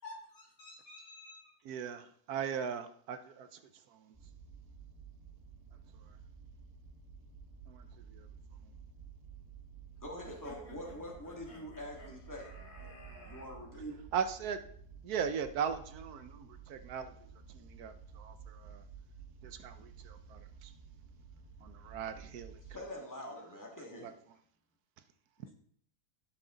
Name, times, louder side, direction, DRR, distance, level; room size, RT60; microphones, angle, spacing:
voice 1, 0.0-1.4 25.4-25.5, left 2 dB, 55° left, 4.1 m, -50 dB
voice 2, 1.7-2.0 2.3-3.5 7.7-7.8 14.1-14.6 15.0-17.1 17.8-18.3 18.6-18.8 19.4-20.4 21.6-22.5, right 7 dB, 75° right, 1.2 m, -37 dB
sound 1, 4.1-22.7, right 6 dB, 20° right, 2.4 m, -53 dB
voice 3, 10.0-12.5 12.8-12.9 13.3-14.0 22.6-24.1, left 1 dB, 10° left, 2.2 m, -45 dB
sound 2, 10.2-13.5, equal, 75° left, 4.1 m, -55 dB
15.5 x 6.2 x 3.9 m
omnidirectional pair, 1.7 m